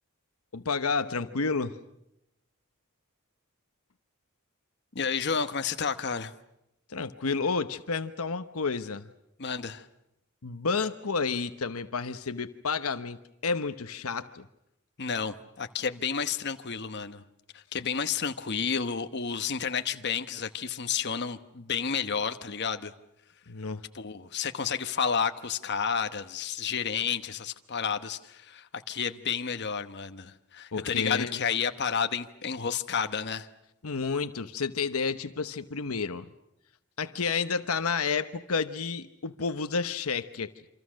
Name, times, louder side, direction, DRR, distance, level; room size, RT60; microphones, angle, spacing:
voice 1, 0.5-1.8 6.9-9.1 10.4-14.4 23.5-23.8 30.7-31.5 33.8-36.3 37.0-40.5, left 4 dB, 75° left, 10 dB, 1.0 m, -30 dB
voice 2, 4.9-6.3 9.4-9.9 15.0-17.2 17.5-22.9 23.9-33.5, left 6 dB, 50° left, 8 dB, 1.1 m, -31 dB
28.0 x 26.0 x 6.4 m, 0.84 s
head